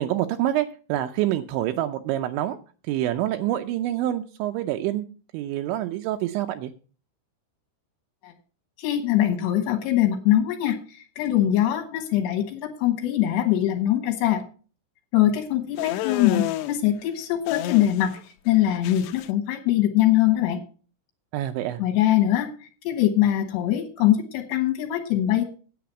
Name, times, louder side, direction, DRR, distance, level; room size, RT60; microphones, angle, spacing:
voice 1, 0.0-2.6 2.9-5.1 5.3-6.7 21.3-21.8, right 13 dB, 80° right, 6 dB, 2.8 m, -26 dB
voice 2, 8.8-10.8 11.2-14.4 15.1-18.1 18.5-20.6 21.8-22.5 22.8-25.4, left 12 dB, 70° left, 3 dB, 3.0 m, -22 dB
sound 1, 15.8-16.7 17.5-18.2 18.5-19.3, left 14 dB, 85° left, 2.4 m, -29 dB
10.0 x 8.5 x 5.8 m, 0.38 s
omnidirectional pair, 5.6 m